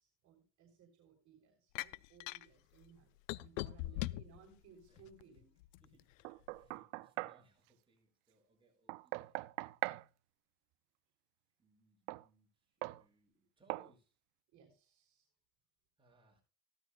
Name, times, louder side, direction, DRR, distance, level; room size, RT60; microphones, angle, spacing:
voice 1, 0.0-5.5 14.5-15.3, right 6 dB, 45° right, 2 dB, 3.5 m, -63 dB
sound 1, 1.8-2.5 3.3-4.4 5.0-5.9, left 17 dB, 80° left, 0.5 m, -40 dB
voice 2, 4.9-5.4 5.8-6.1 6.5-9.4 11.6-14.2 16.0-16.4, right 1 dB, 15° right, -1 dB, 6.9 m, -70 dB
Knock, 6.2-7.4 8.9-10.1 12.1-12.2 12.8-13.0 13.7-13.9, right 23 dB, 60° right, 0.5 m, -41 dB
15.5 x 12.5 x 2.3 m, 0.34 s
supercardioid pair, 110°, 38 cm